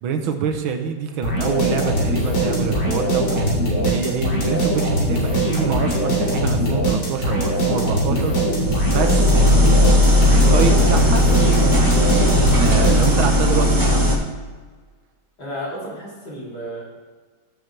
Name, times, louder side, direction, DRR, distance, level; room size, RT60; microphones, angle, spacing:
voice 1, 0.0-8.4 8.9-11.2 12.6-14.1, right 6 dB, 80° right, 6 dB, 1.7 m, -26 dB
sound 1, 1.2-13.4, right 1 dB, 75° left, 3.2 m, -21 dB
sound 2, 8.6-14.2, left 1 dB, 15° right, 0.7 m, -16 dB
voice 2, 15.4-16.8, equal, 55° left, -6 dB, 3.6 m, -32 dB
14.5 x 6.8 x 3.3 m, 1.4 s
omnidirectional pair, 2.2 m